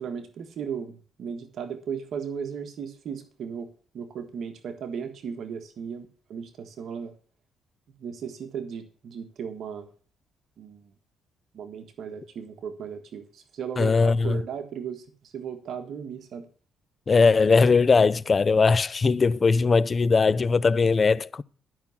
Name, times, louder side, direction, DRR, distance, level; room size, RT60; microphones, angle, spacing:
voice 1, 0.0-3.7 3.9-7.1 8.0-9.9 10.6-10.9 11.5-16.5, right 7 dB, 65° right, 1.6 m, -36 dB
voice 2, 13.8-14.4 17.1-21.4, left 4 dB, 35° left, 0.5 m, -20 dB
12.5 x 6.1 x 7.1 m
cardioid pair, 90°, 0 cm